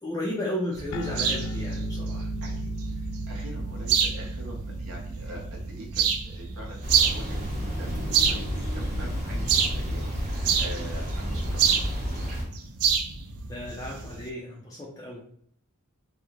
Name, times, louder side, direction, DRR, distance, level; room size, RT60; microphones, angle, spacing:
voice 1, 0.0-2.3 13.5-15.2, left 1 dB, 15° left, -5 dB, 0.4 m, -34 dB
sound 1, 0.7-14.3, right 7 dB, 85° right, 0.4 m, -29 dB
sound 2, 0.9-7.7, right 1 dB, 80° left, 0.3 m, -36 dB
voice 2, 2.4-9.5 9.8-12.3, equal, 70° right, -2 dB, 0.8 m, -44 dB
sound 3, 6.8-12.4, equal, 35° right, 0.9 m, -31 dB
2.9 x 2.0 x 2.3 m, 0.64 s
head